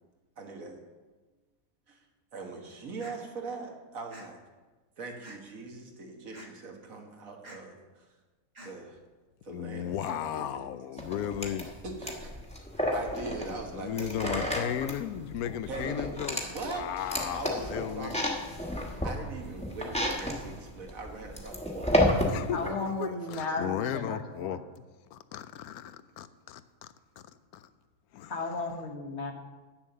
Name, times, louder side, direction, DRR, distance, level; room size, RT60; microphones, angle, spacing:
voice 1, 0.4-0.8 1.9-2.0 2.3-4.4 5.0-8.1 8.6-9.0 9.4-10.7 11.8-12.3 12.7-14.5 15.7-16.2 16.5-18.2 19.0-22.0 22.8-23.8, right 3 dB, 70° right, 2 dB, 1.8 m, -41 dB
sound 1, 3.0-3.2 4.1-4.3 5.2-5.6 6.3-6.5 7.4-7.6 8.5-8.7, equal, 30° right, 1.4 m, -47 dB
voice 2, 9.5-11.7 13.5-18.7 22.3-24.6 25.1-25.4 28.1-28.4, left 10 dB, 90° left, 13 dB, 1.1 m, -35 dB
sound 2, 11.0-22.7, equal, 5° left, 1.2 m, -32 dB
voice 3, 22.5-24.6 28.3-29.3, left 3 dB, 55° left, 4 dB, 1.4 m, -34 dB
8.7 x 7.3 x 6.6 m, 1.3 s
omnidirectional pair, 1.5 m